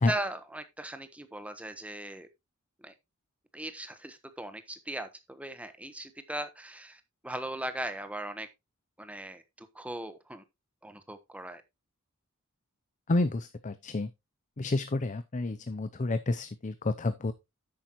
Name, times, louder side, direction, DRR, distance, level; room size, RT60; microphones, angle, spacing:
voice 1, 0.0-2.3 2.8-2.9 3.5-8.5 9.0-10.4 10.8-11.6, right 1 dB, 5° right, 9 dB, 1.1 m, -39 dB
voice 2, 13.1-14.1 14.6-17.3, left 2 dB, 35° left, 12 dB, 0.6 m, -29 dB
10.0 x 8.6 x 3.0 m, 0.23 s
head